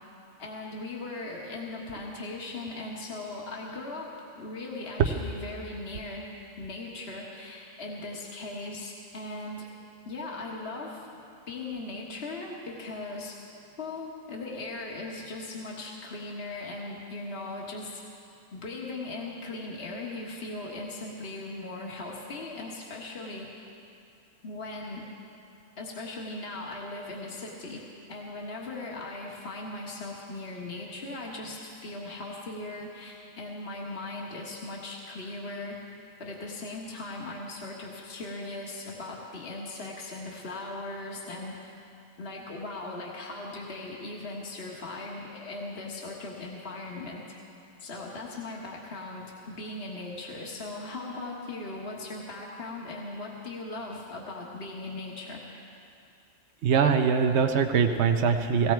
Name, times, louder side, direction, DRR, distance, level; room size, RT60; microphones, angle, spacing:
voice 1, 0.4-6.3 6.6-9.7 10.1-11.1 11.5-13.4 13.8-18.0 18.5-23.5 24.4-25.1 25.8-27.8 28.1-35.8 36.2-41.6 42.2-47.2 47.8-55.4, left 2 dB, 55° left, -2 dB, 1.8 m, -38 dB
voice 2, 56.6-58.7, right 6 dB, 65° right, 5 dB, 1.0 m, -23 dB
17.5 x 17.5 x 4.6 m, 2.6 s
omnidirectional pair, 1.3 m